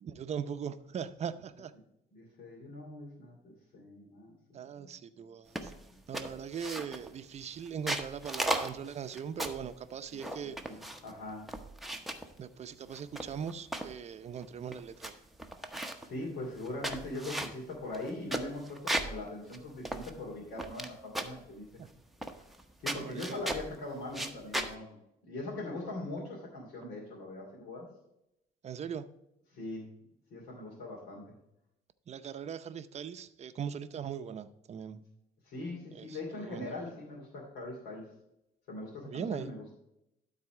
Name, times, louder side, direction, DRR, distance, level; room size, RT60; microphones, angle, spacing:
voice 1, 0.0-1.7 4.5-5.7 6.1-10.6 12.4-15.1 21.8-21.9 22.9-23.4 28.6-29.1 32.1-35.0 36.0-36.1 36.4-36.7 39.1-39.5, right 7 dB, 40° right, 12 dB, 0.6 m, -40 dB
voice 2, 2.1-5.2 5.6-6.0 10.1-11.5 16.0-21.7 22.8-25.0 25.2-27.9 29.5-29.9 30.3-31.3 35.4-38.1 38.7-39.8, left 2 dB, 75° left, -4 dB, 2.6 m, -42 dB
sound 1, 5.6-5.8 6.1-7.1 7.7-9.7 10.2-11.1 11.5-12.3 12.9-13.9 14.4-14.5 14.7-15.1 15.4-16.1 16.6-19.2 19.5-19.6 19.9-20.9 21.1-21.4 22.2-22.6 22.9-23.7 24.1-24.7, right 1 dB, ahead, 0.9 m, -36 dB
12.5 x 4.2 x 4.8 m, 0.85 s
cardioid pair, 110°, 17 cm